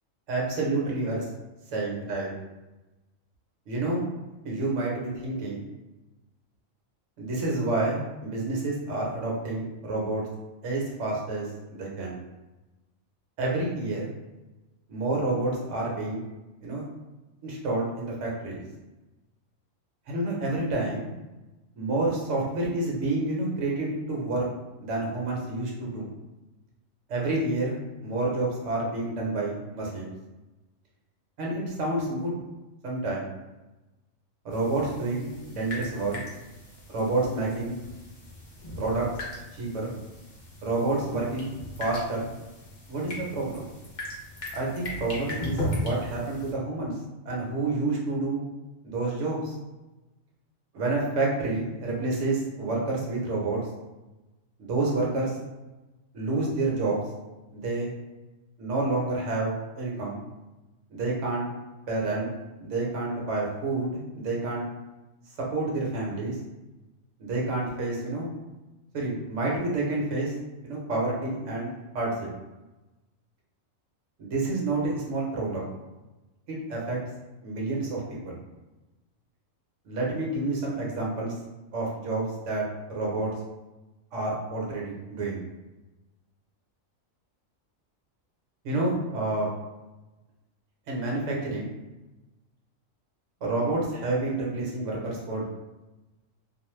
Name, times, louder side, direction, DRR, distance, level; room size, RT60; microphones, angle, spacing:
voice 1, 0.3-1.3 1.7-2.3 3.7-4.1 4.4-5.7 7.2-10.2 10.6-12.2 13.4-14.1 14.9-16.2 16.6-16.8 17.4-18.6 20.1-21.1 21.8-24.5 24.8-26.1 27.1-30.1 31.4-32.4 32.8-33.3 34.4-36.2 36.9-37.8 38.8-39.1 39.5-39.9 40.6-41.5 41.8-42.3 42.9-43.6 44.5-46.9 47.2-48.4 48.8-49.5 50.7-53.6 54.6-55.4 56.1-57.0 57.5-57.9 58.6-60.2 60.9-61.5 61.9-62.3 62.6-64.7 65.4-66.4 67.2-68.3 68.9-70.3 70.6-72.3 74.2-75.7 76.5-77.0 77.4-78.4 79.8-81.3 81.7-83.3 84.1-85.4 88.6-89.5 90.9-91.7 93.4-95.5, right 2 dB, 65° right, -3 dB, 1.0 m, -29 dB
sound 1, 34.5-46.5, left 1 dB, 50° left, 0.6 m, -38 dB
2.4 x 2.0 x 3.0 m, 1.1 s
omnidirectional pair, 1.4 m